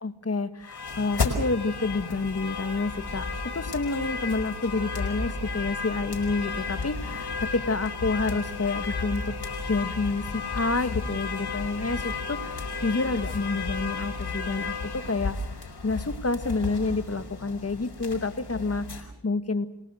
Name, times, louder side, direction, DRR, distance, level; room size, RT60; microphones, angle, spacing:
voice 1, 0.0-9.4 9.7-19.7, left 3 dB, 35° left, 11 dB, 1.7 m, -29 dB
sound 1, 0.6-19.0, left 4 dB, 60° left, 5.3 m, -33 dB
29.0 x 17.5 x 6.5 m, 0.82 s
cardioid pair, 50°, 45 cm